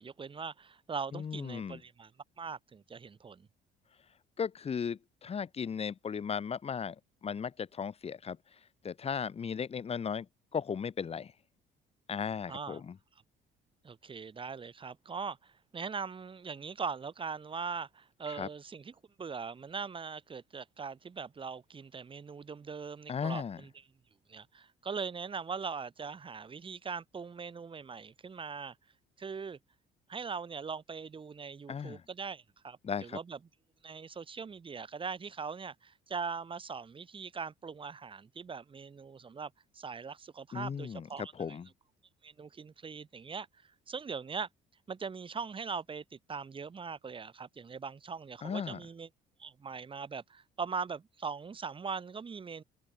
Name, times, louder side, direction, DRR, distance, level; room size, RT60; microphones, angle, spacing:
voice 1, 0.0-2.1 2.4-3.5 12.5-12.8 13.8-18.9 19.2-23.7 24.3-28.8 29.2-29.6 30.1-33.4 33.8-41.6 42.2-44.5 44.9-49.1 49.4-52.6, right 5 dB, 30° right, 5.4 m, -41 dB
voice 2, 1.1-1.8 4.4-10.3 10.5-11.3 12.1-13.0 18.3-18.5 23.1-23.6 31.7-32.0 32.8-33.2 40.5-41.7 48.4-48.8, left 6 dB, 35° left, 3.6 m, -36 dB
cardioid pair, 110°, 17 cm